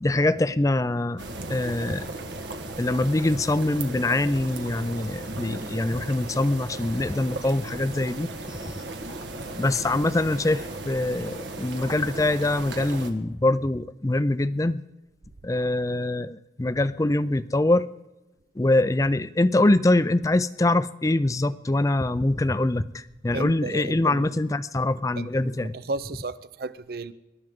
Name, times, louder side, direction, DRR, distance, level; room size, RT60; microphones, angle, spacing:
voice 1, 0.0-1.2 1.5-2.1 2.8-8.8 9.6-14.8 15.4-17.9 18.6-25.7, left 2 dB, 20° left, 0.4 m, -24 dB
sound 1, 1.2-13.1, right 2 dB, 85° right, 1.6 m, -36 dB
voice 2, 23.3-24.3 25.2-27.1, right 3 dB, 55° right, 0.6 m, -34 dB
26.0 x 12.0 x 3.7 m
head